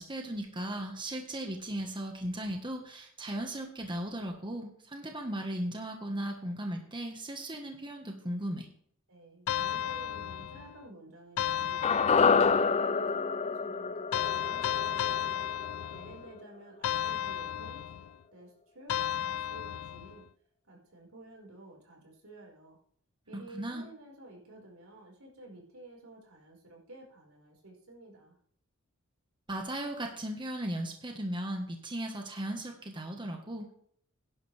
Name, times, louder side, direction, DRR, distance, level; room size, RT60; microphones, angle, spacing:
voice 1, 0.0-8.7 23.3-23.8 29.5-33.7, right 1 dB, 25° right, 3 dB, 1.5 m, -37 dB
voice 2, 9.1-15.4 15.9-17.8 18.3-20.2 20.7-22.8 23.2-28.4, right 2 dB, 85° right, -1 dB, 5.2 m, -52 dB
sound 1, 9.5-10.8 11.4-12.7 14.1-16.3 16.8-18.1 18.9-20.2, left 10 dB, 90° left, 0.4 m, -34 dB
sound 2, 11.8-16.1 16.4-16.5, left 5 dB, 30° left, 0.4 m, -27 dB
16.5 x 11.0 x 3.5 m, 0.62 s
head